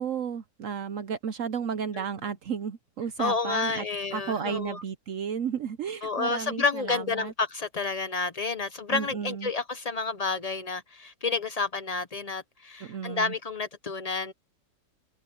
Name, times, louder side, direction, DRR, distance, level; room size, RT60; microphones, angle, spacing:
voice 1, 0.0-3.8 4.1-7.3 8.9-9.5 12.8-13.3, right 7 dB, 65° right, 0.8 m, -33 dB
voice 2, 3.2-4.8 6.0-14.3, left 4 dB, 50° left, 0.4 m, -30 dB
open air
omnidirectional pair, 2.0 m